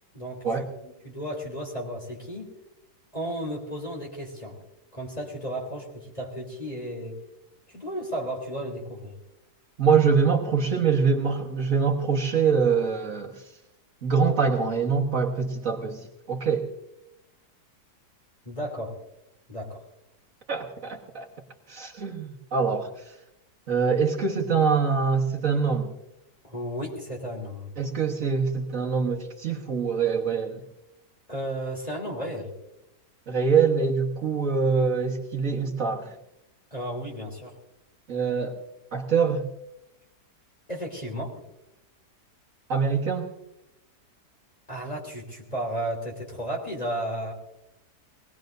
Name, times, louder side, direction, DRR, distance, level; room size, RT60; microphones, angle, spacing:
voice 1, 0.8-2.5 3.1-4.6 4.9-7.2 7.7-9.1 18.4-19.0 19.5-19.8 26.4-27.7 31.3-32.5 36.7-37.5 40.7-41.4 44.7-47.3, equal, 20° left, -1 dB, 3.2 m, -33 dB
voice 2, 9.8-13.4 14.0-16.7 20.5-21.3 21.7-23.2 23.7-25.9 27.8-30.6 33.3-36.2 38.1-38.6 38.9-39.4 42.7-43.3, right 5 dB, 55° right, -1 dB, 1.7 m, -24 dB
21.5 x 19.0 x 2.6 m, 0.88 s
omnidirectional pair, 1.8 m